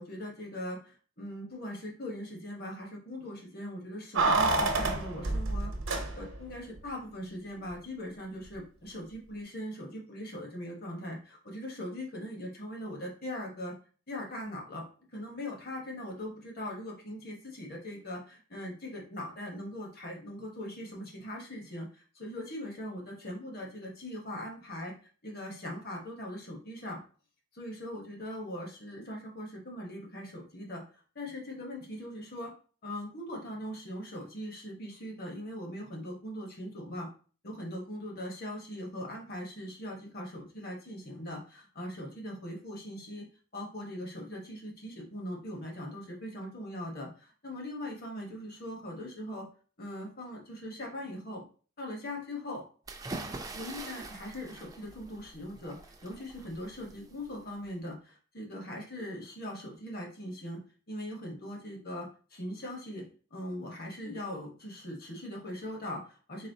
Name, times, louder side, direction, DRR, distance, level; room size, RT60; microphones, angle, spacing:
voice 1, 0.0-5.7 6.1-13.8 14.1-14.8 15.1-24.9 25.2-27.0 27.5-30.8 31.1-32.5 32.8-37.1 37.4-43.3 43.5-49.5 49.8-51.4 51.8-52.6 53.5-60.6 60.9-66.5, left 1 dB, 50° left, 0 dB, 1.1 m, -40 dB
Keys jangling, 4.2-6.5 6.8-6.9, right 2 dB, 80° right, 0.8 m, -28 dB
sound 1, 52.9-57.7, right 2 dB, 20° right, 0.4 m, -44 dB
4.0 x 3.3 x 2.7 m, 0.39 s
head